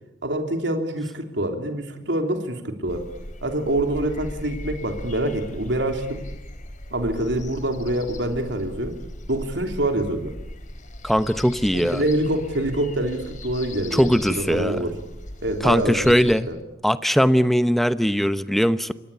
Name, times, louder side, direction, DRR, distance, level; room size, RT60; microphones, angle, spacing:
voice 1, 0.2-3.1 3.4-6.2 6.9-9.0 9.3-10.3 11.7-15.0 15.4-16.2 16.5-16.6, right 1 dB, 80° right, 4 dB, 3.3 m, -25 dB
sound 1, 2.9-16.4, left 1 dB, 45° left, 4.5 m, -38 dB
voice 2, 11.0-12.0 13.9-14.8 15.6-16.5 16.8-18.9, equal, ahead, 12 dB, 0.9 m, -20 dB
28.0 x 24.0 x 8.5 m, 0.91 s
head